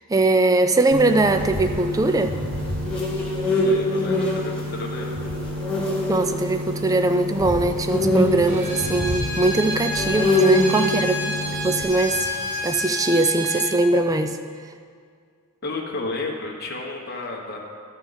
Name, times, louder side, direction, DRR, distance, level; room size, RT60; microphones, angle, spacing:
voice 1, 0.0-2.4 6.1-12.3 12.6-14.4, right 2 dB, 15° right, 8 dB, 0.3 m, -21 dB
sound 1, 0.9-11.8, equal, 80° right, 0.7 m, -32 dB
sound 2, 1.1-6.9 7.3-12.7, left 1 dB, 5° left, 1.4 m, -25 dB
voice 2, 3.6-5.2 15.6-17.6, left 3 dB, 45° left, -1 dB, 1.2 m, -32 dB
Bowed string instrument, 8.5-13.8, left 1 dB, 30° right, 1.4 m, -29 dB
13.0 x 4.4 x 5.6 m, 2.1 s
head